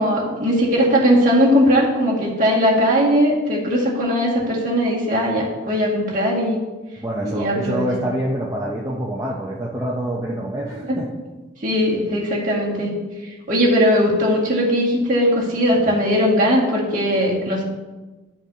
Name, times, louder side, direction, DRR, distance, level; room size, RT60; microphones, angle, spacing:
voice 1, 0.0-6.6 7.2-7.9 10.9-11.0 11.6-12.9 13.5-17.6, equal, 45° right, -5 dB, 2.0 m, -19 dB
voice 2, 7.0-11.1, right 1 dB, 15° right, -4 dB, 0.7 m, -26 dB
11.5 x 5.8 x 2.8 m, 1.2 s
head